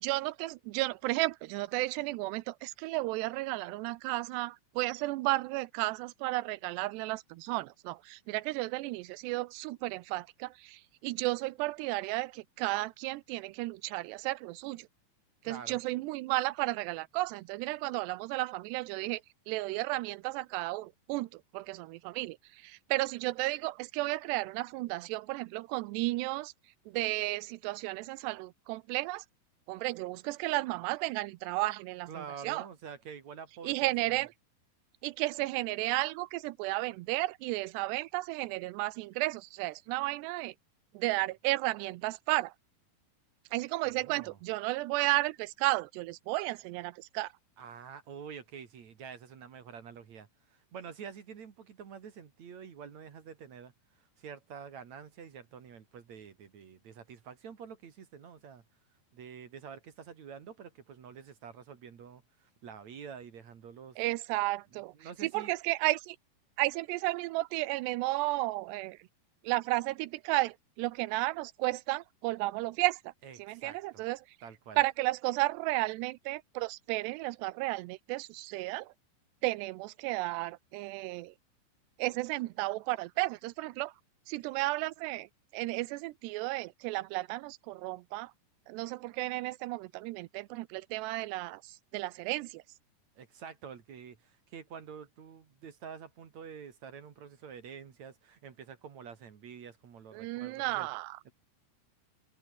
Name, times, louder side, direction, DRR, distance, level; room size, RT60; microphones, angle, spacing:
voice 1, 0.0-14.9 15.5-19.2 19.5-22.4 22.6-26.5 26.9-29.2 29.7-32.7 33.6-34.3 35.0-40.5 40.9-42.5 43.5-47.3 64.0-64.9 65.2-66.2 66.6-69.0 69.4-73.1 73.4-74.2 74.8-78.9 79.4-81.3 82.0-83.9 84.3-85.3 85.5-88.3 88.7-92.6 100.1-101.2, right 20 dB, 85° right, 2.9 m, -33 dB
voice 2, 15.4-15.8 32.1-34.2 43.9-44.4 47.6-53.7 54.2-58.6 59.1-64.0 64.7-65.5 73.2-74.0 74.4-74.8 93.1-100.9 101.2-101.3, right 7 dB, 50° right, 3.1 m, -47 dB
omnidirectional pair, 4.8 m